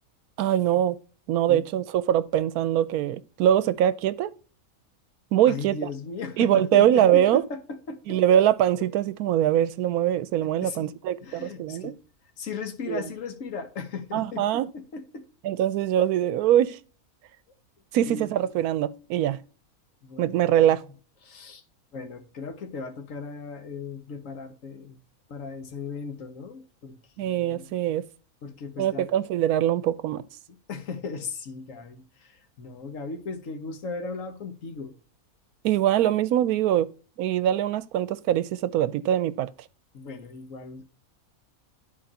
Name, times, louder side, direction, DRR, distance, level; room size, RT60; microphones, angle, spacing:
voice 1, 0.4-1.0 1.3-4.3 5.3-5.7 6.4-7.4 8.1-11.9 12.9-13.0 14.1-14.7 15.4-16.8 17.9-19.4 20.2-20.8 27.2-28.1 28.8-30.2 35.6-36.9 37.2-39.5, right 11 dB, 90° right, 1.1 m, -23 dB
voice 2, 5.5-8.2 10.6-12.0 12.4-15.2 18.1-18.3 20.0-20.7 21.2-21.6 21.9-25.0 25.3-27.7 28.4-29.1 30.5-34.9 39.9-40.9, left 4 dB, 60° left, 1.4 m, -37 dB
12.0 x 4.5 x 2.8 m
omnidirectional pair, 1.5 m